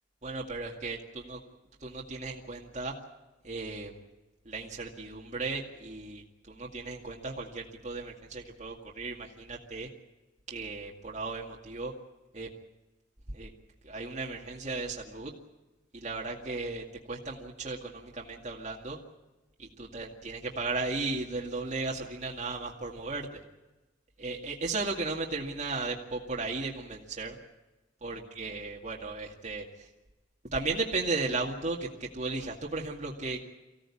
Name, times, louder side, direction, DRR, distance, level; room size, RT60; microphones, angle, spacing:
voice 1, 0.2-1.4 1.8-2.9 3.4-4.0 4.5-9.9 10.5-11.9 12.3-12.5 13.3-13.5 13.8-15.3 15.9-19.0 19.6-23.4 24.2-27.4 28.0-29.9 30.5-33.4, right 3 dB, 40° right, -2 dB, 2.2 m, -35 dB
24.5 x 16.5 x 8.6 m, 1.1 s
head